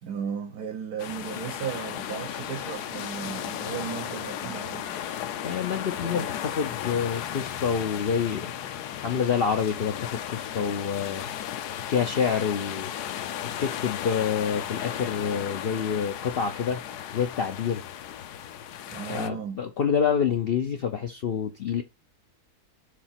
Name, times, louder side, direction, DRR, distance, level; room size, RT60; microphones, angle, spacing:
voice 1, 0.0-5.0 18.9-19.6, right 8 dB, 70° right, 1.4 m, -35 dB
sound 1, 1.0-19.3, left 10 dB, 85° left, 1.2 m, -35 dB
voice 2, 5.4-8.5 9.0-11.3 11.9-12.9 13.4-16.8 17.1-17.8 19.1-21.8, left 7 dB, 65° left, 0.6 m, -27 dB
5.0 x 3.8 x 5.7 m
omnidirectional pair, 1.7 m